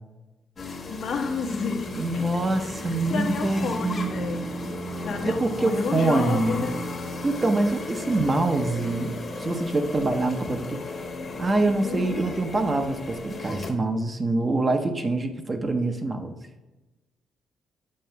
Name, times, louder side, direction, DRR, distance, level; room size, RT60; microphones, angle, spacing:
sound 1, 0.6-13.7, left 1 dB, 40° left, 1.1 m, -34 dB
voice 1, 0.9-2.2 2.6-4.5 5.0-6.8 11.8-12.3, left 5 dB, 65° left, 1 dB, 1.1 m, -31 dB
voice 2, 2.0-4.2 5.0-6.7 7.2-10.8 11.4-16.4, right 2 dB, 30° right, 6 dB, 0.7 m, -25 dB
7.5 x 2.5 x 5.6 m, 1.1 s
cardioid pair, 90°, 0 cm